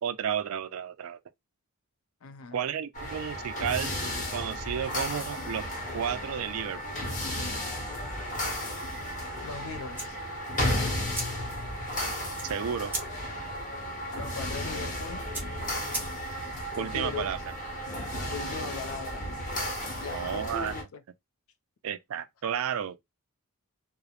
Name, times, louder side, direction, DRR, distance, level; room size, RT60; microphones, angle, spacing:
voice 1, 0.0-1.2 2.5-3.9 4.3-5.7 5.9-7.0 12.4-12.9 16.8-17.4 20.1-20.7 21.8-23.0, right 8 dB, 70° right, 0.4 m, -32 dB
voice 2, 2.2-2.6 9.4-10.2 14.2-15.3 16.8-17.3 18.3-19.3 19.8-21.0, left 5 dB, 65° left, 0.5 m, -39 dB
sound 1, 2.9-20.8, equal, 35° left, 0.9 m, -34 dB
sound 2, 9.9-16.5, right 2 dB, 10° right, 0.9 m, -41 dB
2.9 x 2.0 x 2.3 m
head